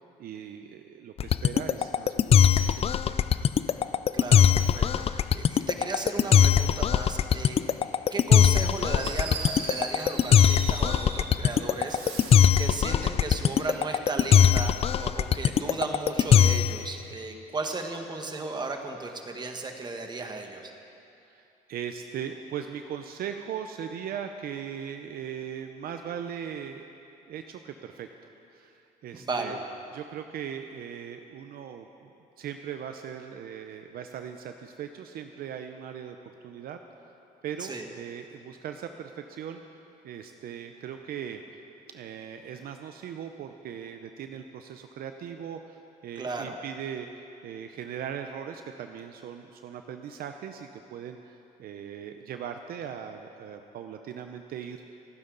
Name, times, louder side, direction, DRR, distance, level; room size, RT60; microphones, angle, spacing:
voice 1, 0.2-3.2 21.3-26.8 27.3-28.1 28.5-29.6 29.9-32.1 32.4-36.2 36.4-36.8 37.4-39.6 40.0-41.4 41.9-47.1 47.4-54.8, right 8 dB, 65° right, 6 dB, 0.7 m, -39 dB
sound 1, 1.2-16.8, left 9 dB, 35° left, 0.4 m, -20 dB
voice 2, 4.1-7.6 8.1-12.3 12.6-20.7 29.1-29.6 37.6-37.9 46.1-46.6, right 3 dB, 25° right, 4 dB, 1.5 m, -35 dB
Fireworks, 9.0-11.4 11.8-12.6, right 4 dB, 80° right, 1.9 m, -38 dB
28.5 x 9.7 x 4.0 m, 2.7 s
cardioid pair, 110°, 17 cm